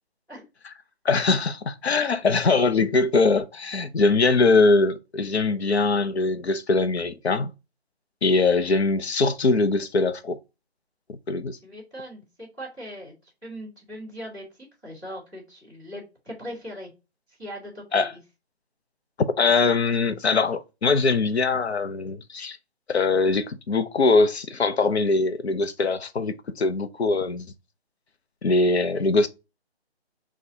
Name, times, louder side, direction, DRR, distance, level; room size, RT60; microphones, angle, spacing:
voice 1, 1.0-7.5 8.2-10.4 11.1-11.6 17.9-18.1 19.4-22.6 22.9-27.5 28.4-29.3, left 3 dB, 75° left, 0.7 m, -22 dB
voice 2, 11.6-13.2 13.4-14.5 14.8-16.9 17.4-18.1, equal, 10° left, 1.8 m, -39 dB
6.3 x 2.4 x 2.8 m
hypercardioid pair, 175°, 32 cm